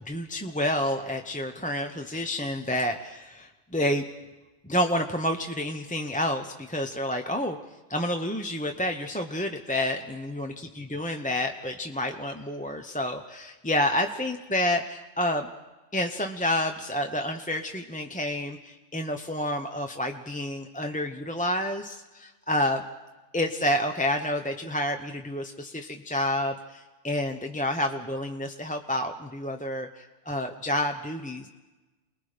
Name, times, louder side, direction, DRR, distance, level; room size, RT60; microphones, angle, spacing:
voice 1, 0.1-4.0 4.6-7.6 7.9-15.5 15.9-22.8 23.3-31.5, left 1 dB, 10° left, 4 dB, 0.7 m, -29 dB
29.0 x 21.0 x 5.1 m, 1.2 s
omnidirectional pair, 1.4 m